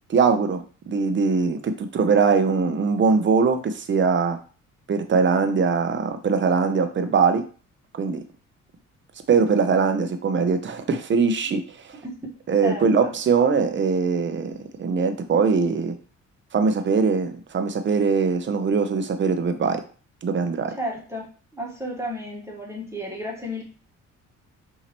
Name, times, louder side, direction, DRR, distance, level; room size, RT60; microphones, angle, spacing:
voice 1, 0.1-4.4 4.9-7.4 7.9-8.2 9.3-11.6 11.9-12.0 12.5-14.5 14.8-15.9 16.5-19.8 20.2-20.7, right 5 dB, 40° right, 8 dB, 0.7 m, -21 dB
voice 2, 12.6-13.1 20.7-21.3 21.5-23.6, equal, 10° right, -3 dB, 1.4 m, -32 dB
5.9 x 2.8 x 3.0 m, 0.39 s
cardioid pair, 90°, 30 cm